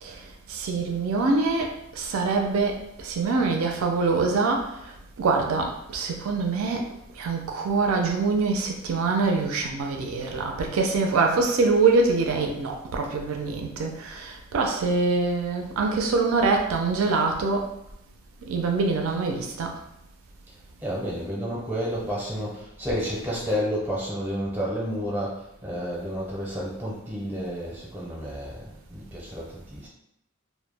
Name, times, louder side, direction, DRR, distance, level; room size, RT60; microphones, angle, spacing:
voice 1, 0.0-4.8 5.2-6.9 7.2-17.7 18.5-19.8, right 4 dB, 75° right, 2 dB, 0.4 m, -24 dB
voice 2, 20.8-29.9, equal, 10° right, -4 dB, 0.5 m, -31 dB
2.1 x 2.0 x 3.2 m, 0.81 s
head